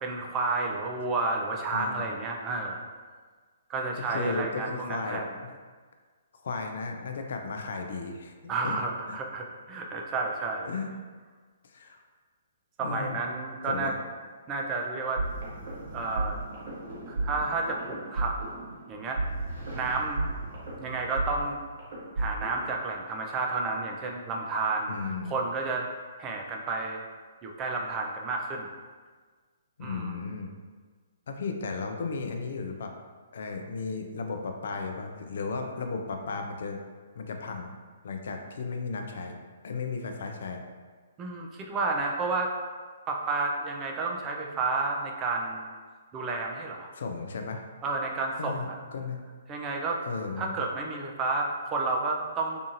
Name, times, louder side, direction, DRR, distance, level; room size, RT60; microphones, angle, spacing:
voice 1, 0.0-2.8 3.7-5.3 8.5-10.7 12.8-13.9 14.5-15.2 15.9-16.4 17.1-18.4 18.9-19.2 19.7-20.2 20.8-21.6 22.2-24.9 25.3-25.9 26.2-27.0 27.4-28.7 29.8-30.3 41.2-42.5 43.1-45.7 46.1-46.9 47.8-48.8 49.5-50.0 50.4-52.6, right 3 dB, 25° right, 0 dB, 0.4 m, -31 dB
voice 2, 1.7-2.0 3.9-5.5 6.4-8.8 9.1-9.2 10.6-10.9 11.6-12.0 12.8-13.2 13.6-13.9 24.9-25.4 29.8-30.5 31.3-32.9 33.3-36.8 37.2-37.7 38.0-39.4 39.6-40.6 46.9-47.6 48.4-49.2 50.0-50.7, left 4 dB, 60° left, 4 dB, 0.3 m, -35 dB
sound 1, 15.2-22.7, right 2 dB, 50° right, 1.1 m, -34 dB
2.6 x 2.4 x 2.6 m, 1.5 s
figure-of-eight pair, 125°, 0 cm